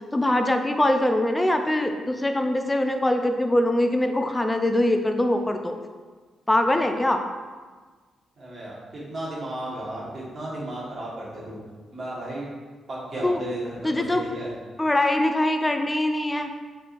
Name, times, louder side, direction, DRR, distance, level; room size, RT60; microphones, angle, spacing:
voice 1, 0.1-5.8 6.5-7.2 13.2-13.4 13.8-14.2 14.8-16.5, left 1 dB, 15° left, 5 dB, 0.4 m, -23 dB
voice 2, 8.4-11.6 11.9-12.5 12.9-14.5, right 1 dB, 40° right, -6 dB, 1.5 m, -34 dB
5.4 x 3.7 x 2.5 m, 1.4 s
cardioid pair, 115°, 0 cm